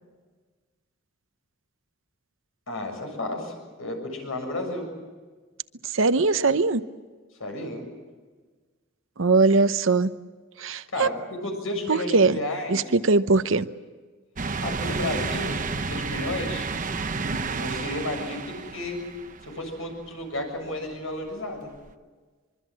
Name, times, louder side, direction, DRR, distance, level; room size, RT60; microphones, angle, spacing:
voice 1, 2.7-4.9 7.4-7.8 10.9-12.8 14.6-16.7 17.6-19.0 19.4-21.7, left 1 dB, 85° left, 7.0 m, -32 dB
voice 2, 5.9-6.8 9.2-10.1 10.6-11.1 11.9-12.4 12.7-13.7, right 3 dB, 70° right, 0.9 m, -21 dB
sound 1, 14.4-19.9 20.4-20.5 21.9-22.0, right 4 dB, 40° right, 0.9 m, -31 dB
24.5 x 23.5 x 7.6 m
head